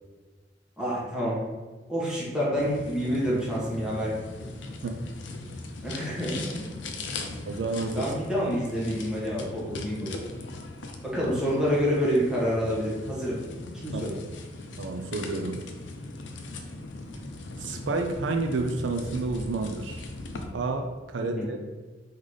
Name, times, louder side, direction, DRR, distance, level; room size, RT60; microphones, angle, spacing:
voice 1, 0.8-1.4 1.9-4.5 5.8-6.6 7.9-10.1 11.0-13.4 13.7-14.2 21.2-21.5, equal, 5° right, -7 dB, 1.4 m, -28 dB
sound 1, 2.6-20.5, left 2 dB, 85° left, 0.6 m, -39 dB
voice 2, 7.5-8.1 13.9-14.1 14.8-15.6 17.6-20.1 20.5-21.6, right 3 dB, 80° right, 5 dB, 0.4 m, -30 dB
3.9 x 3.9 x 3.2 m, 1.3 s
head